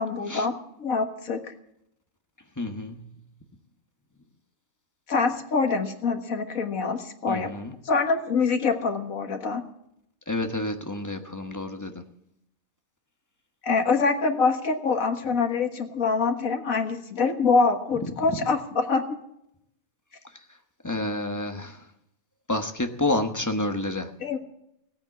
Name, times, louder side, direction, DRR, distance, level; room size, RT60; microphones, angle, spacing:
voice 1, 0.0-1.4 5.1-7.5 7.9-9.6 13.6-19.2 24.2-24.4, left 4 dB, 75° left, 1.9 m, -25 dB
voice 2, 2.6-3.1 7.3-7.7 10.3-12.0 20.8-21.8 22.5-24.1, left 2 dB, 15° left, 1.2 m, -29 dB
17.0 x 9.0 x 7.2 m
omnidirectional pair, 1.4 m